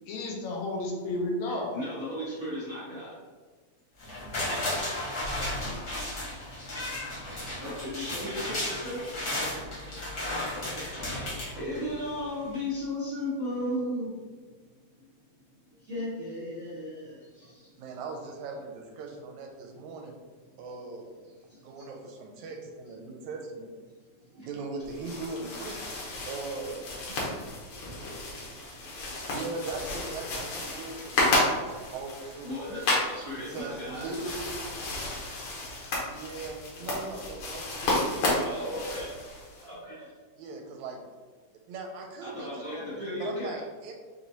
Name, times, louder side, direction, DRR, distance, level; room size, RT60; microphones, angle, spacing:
voice 1, 0.1-1.7 5.3-5.7, left 2 dB, 80° left, 0 dB, 1.8 m, -32 dB
voice 2, 1.5-3.2 7.5-14.4 15.7-17.7 21.5-21.9 24.2-24.5 27.9-29.3 32.4-34.1 36.7-36.8 38.3-39.2 39.6-40.1 42.2-43.6, left 1 dB, 55° right, -12 dB, 0.9 m, -37 dB
sound 1, 4.0-12.2 12.5-12.6, left 1 dB, 45° left, 1.4 m, -34 dB
voice 3, 17.8-20.1 20.6-21.1 21.6-23.7 24.4-25.8 26.3-27.5 28.9-32.6 33.3-34.7 36.0-38.6 40.4-41.0 41.7-43.9, right 3 dB, 85° right, 2 dB, 1.9 m, -40 dB
sound 2, 24.8-39.7, left 2 dB, 65° left, 1.6 m, -32 dB
4.9 x 3.0 x 2.7 m, 1.5 s
omnidirectional pair, 3.3 m